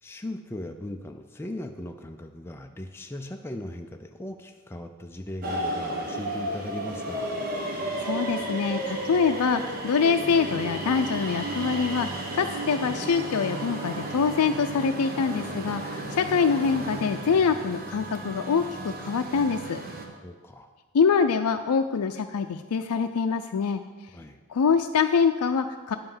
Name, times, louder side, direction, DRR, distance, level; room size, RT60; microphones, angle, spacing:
voice 1, 0.0-7.3 20.2-20.7 24.1-24.4, left 1 dB, 10° left, 4 dB, 0.3 m, -38 dB
sound 1, 5.4-20.0, right 1 dB, 40° right, 1.3 m, -33 dB
voice 2, 8.0-19.8 20.9-23.8 24.5-25.9, left 5 dB, 80° left, 7 dB, 0.4 m, -25 dB
9.4 x 5.5 x 7.2 m, 1.4 s
head